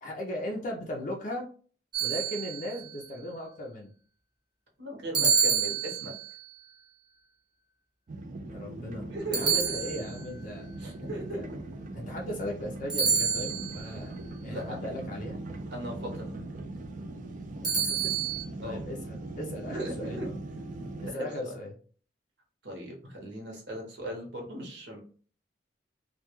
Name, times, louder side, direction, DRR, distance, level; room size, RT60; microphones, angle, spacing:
voice 1, 0.0-1.4 2.0-3.9 8.5-9.0 9.3-10.7 11.3-11.4 11.9-14.1 14.4-15.4 17.6-18.2 18.6-20.2 21.0-21.7, left 1 dB, 45° left, 0 dB, 0.4 m, -37 dB
sound 1, 1.9-2.9 5.1-6.4 9.3-10.4 12.9-13.9 17.6-18.4, right 6 dB, 25° right, 0.7 m, -28 dB
voice 2, 4.8-6.1 9.1-9.9 10.8-11.4 14.5-14.8 15.7-16.4 18.6-18.8 19.7-20.3 21.1-21.6 22.6-25.0, right 1 dB, 70° right, 0 dB, 0.9 m, -38 dB
sound 2, 8.1-21.1, right 2 dB, 45° right, 0.3 m, -40 dB
2.2 x 2.2 x 2.9 m, 0.42 s
head